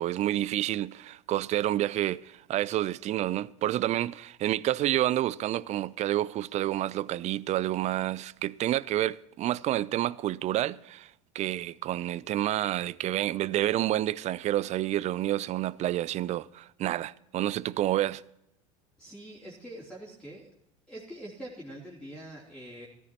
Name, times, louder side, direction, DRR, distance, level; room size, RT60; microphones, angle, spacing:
voice 1, 0.0-18.2, right 13 dB, 40° right, 0.4 m, -29 dB
voice 2, 19.0-20.5 20.9-22.9, right 1 dB, 5° left, 3.1 m, -44 dB
14.5 x 12.5 x 2.9 m
hypercardioid pair, 80°, 18 cm